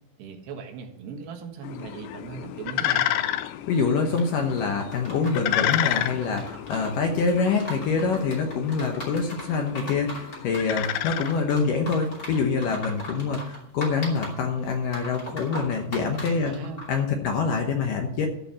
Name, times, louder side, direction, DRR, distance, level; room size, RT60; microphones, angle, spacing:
voice 1, 0.2-3.1 16.3-16.8, right 5 dB, 80° right, 4 dB, 3.5 m, -38 dB
sound 1, 1.6-12.0, left 13 dB, 85° left, 2.9 m, -31 dB
voice 2, 3.7-16.5 16.9-18.3, left 5 dB, 70° left, 3 dB, 2.1 m, -25 dB
sound 2, 4.1-17.0, equal, 25° left, 2.6 m, -40 dB
13.5 x 5.4 x 7.5 m, 0.84 s
omnidirectional pair, 4.9 m